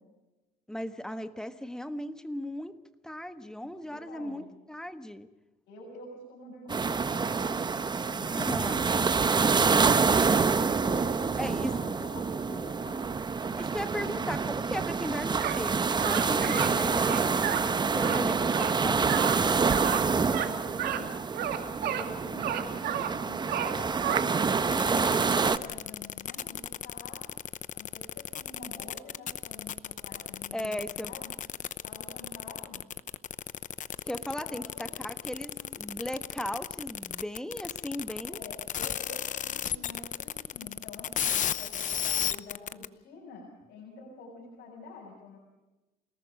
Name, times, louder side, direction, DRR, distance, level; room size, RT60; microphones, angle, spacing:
voice 1, 0.7-5.3 8.3-8.8 11.4-11.8 13.5-19.3 30.5-31.1 34.1-38.4, equal, 5° left, 10 dB, 1.4 m, -37 dB
voice 2, 3.6-4.5 5.7-7.5 8.0-13.1 14.0-14.3 19.5-20.0 20.3-24.7 25.0-27.3 27.7-31.3 31.8-32.8 34.4-35.0 35.4-35.8 38.3-45.4, left 3 dB, 75° left, -3 dB, 6.7 m, -47 dB
sound 1, 6.7-25.6, right 5 dB, 25° right, 1.0 m, -27 dB
sound 2, 15.4-15.6 16.0-16.7 17.0-17.6 18.0-18.2 18.5-18.7 19.1-19.4 19.7-20.0 20.3-20.5 20.8-21.0 21.3-22.1 22.4-23.1 23.5-24.2, right 11 dB, 70° right, 2.6 m, -32 dB
sound 3, 24.7-42.9, left 10 dB, 50° left, 0.9 m, -34 dB
28.5 x 18.5 x 5.1 m, 1.1 s
cardioid pair, 110°, 17 cm